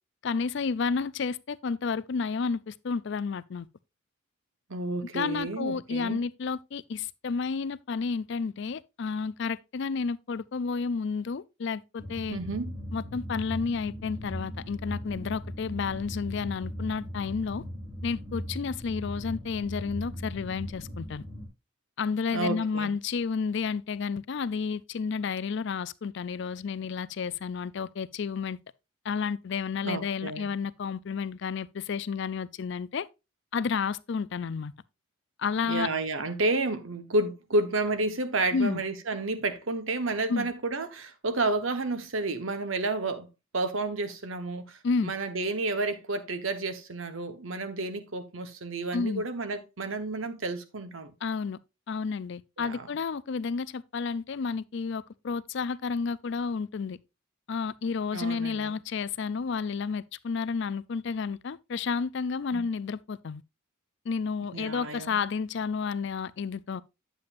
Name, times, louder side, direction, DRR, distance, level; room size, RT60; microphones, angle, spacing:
voice 1, 0.2-3.7 5.1-12.4 12.9-17.6 18.0-21.2 22.0-28.6 29.0-33.1 33.5-34.7 35.4-35.9 38.5-38.8 40.3-40.5 44.8-45.1 48.9-49.2 51.2-51.6 51.9-57.0 57.5-63.4 64.1-66.8, left 5 dB, 55° left, 0.4 m, -31 dB
voice 2, 4.7-6.2 12.3-12.7 22.3-22.9 29.8-30.5 35.6-43.3 43.5-51.1 52.6-52.9 58.1-58.7 62.5-62.6 64.5-65.2, right 2 dB, 70° right, 1.2 m, -31 dB
sound 1, 12.0-21.5, equal, 35° right, 2.5 m, -38 dB
8.9 x 7.7 x 2.5 m
head